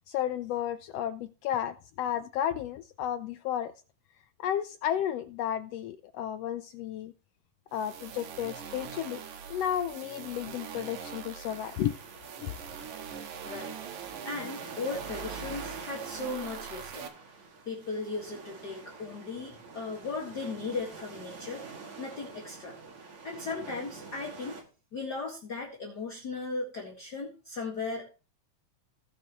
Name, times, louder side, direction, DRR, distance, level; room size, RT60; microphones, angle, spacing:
voice 1, 0.1-3.7 4.4-7.1 7.7-9.2 9.5-11.9 12.4-12.5, left 10 dB, 80° left, 1.4 m, -32 dB
sound 1, 7.7-17.1, right 7 dB, 90° right, 2.8 m, -43 dB
sound 2, 11.5-24.6, right 4 dB, 65° right, 3.7 m, -46 dB
voice 2, 13.4-13.7 14.2-17.1 17.7-22.8 23.2-24.6 24.9-28.1, left 3 dB, 40° left, 2.1 m, -37 dB
18.5 x 6.4 x 3.0 m
omnidirectional pair, 3.4 m